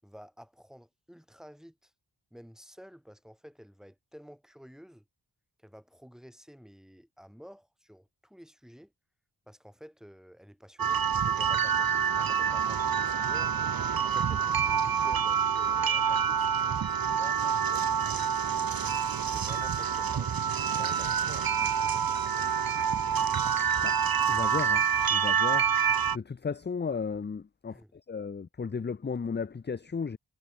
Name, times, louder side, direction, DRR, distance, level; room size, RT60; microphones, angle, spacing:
voice 1, 0.0-1.9 2.3-5.0 5.6-8.9 9.5-18.3 19.3-22.7 27.7-27.9, equal, ahead, 6.7 m, -52 dB
sound 1, 10.8-26.2, right 7 dB, 55° right, 1.0 m, -27 dB
voice 2, 23.8-25.9 26.1-30.2, left 5 dB, 25° left, 0.5 m, -35 dB
wide cardioid pair, 130°, 43 cm